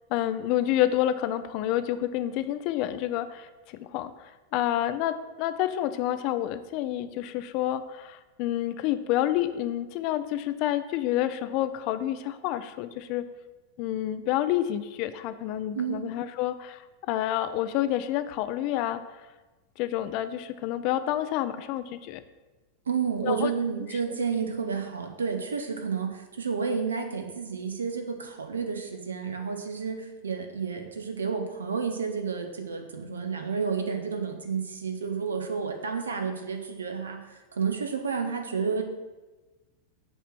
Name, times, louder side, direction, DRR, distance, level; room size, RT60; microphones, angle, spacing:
voice 1, 0.1-13.2 13.8-16.8 17.1-19.0 19.8-22.2 23.2-23.5, left 12 dB, 45° left, 12 dB, 0.4 m, -29 dB
voice 2, 15.7-16.1 22.9-38.8, right 5 dB, 70° right, 4 dB, 0.8 m, -31 dB
6.8 x 3.1 x 5.8 m, 1.2 s
figure-of-eight pair, 90°, 0 cm